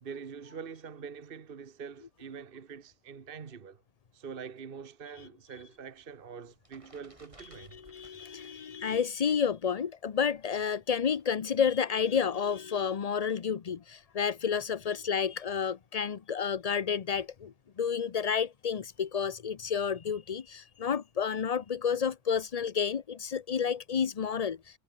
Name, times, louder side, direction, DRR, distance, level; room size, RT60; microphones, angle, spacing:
voice 1, 0.0-3.8 4.1-7.8, right 6 dB, 55° right, 1.3 m, -44 dB
sound 1, 5.8-9.1 9.4-11.3, right 1 dB, 25° right, 5.1 m, -60 dB
voice 2, 7.5-24.8, left 7 dB, 40° left, 0.6 m, -30 dB
omnidirectional pair, 1.2 m